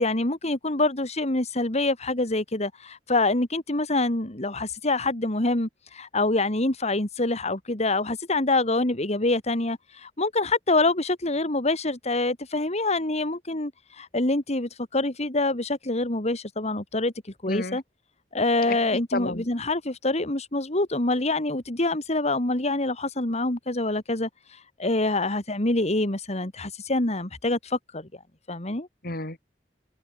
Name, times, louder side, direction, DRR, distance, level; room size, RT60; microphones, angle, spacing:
voice 1, 0.0-17.8 18.3-28.1 28.5-28.9, left 2 dB, 40° left, 2.5 m, -26 dB
voice 2, 17.5-17.8 18.7-19.4 29.0-29.5, left 2 dB, 55° left, 7.1 m, -32 dB
head